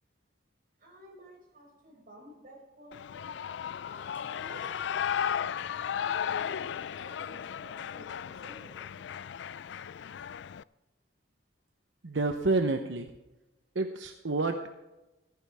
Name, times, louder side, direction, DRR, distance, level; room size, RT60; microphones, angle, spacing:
voice 1, 0.8-3.3 4.2-4.7 5.6-8.8, equal, 50° right, -1 dB, 6.0 m, -52 dB
Shout / Cheering, 2.9-10.6, left 8 dB, 70° left, 0.4 m, -35 dB
Musical instrument, 3.9-10.3, left 1 dB, 10° left, 2.1 m, -58 dB
voice 2, 12.0-13.1 13.7-14.7, right 3 dB, 85° right, 6 dB, 0.9 m, -29 dB
15.5 x 14.0 x 3.5 m, 1.0 s
head